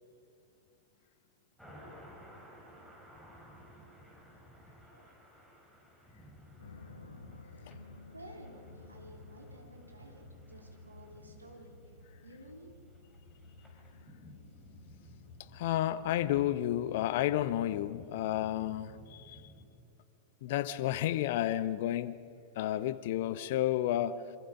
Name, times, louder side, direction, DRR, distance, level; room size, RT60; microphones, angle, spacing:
sound 1, 1.6-19.7, equal, ahead, 5.1 m, -56 dB
voice 1, 4.8-5.2 8.1-11.8 12.2-12.8, right 1 dB, 85° right, 3.4 m, -53 dB
sound 2, 6.6-16.6, left 2 dB, 75° left, 1.3 m, -54 dB
voice 2, 15.5-19.4 20.4-22.2 22.6-24.2, left 13 dB, 55° left, 0.9 m, -31 dB
27.0 x 25.0 x 5.3 m
figure-of-eight pair, 90°, 0 cm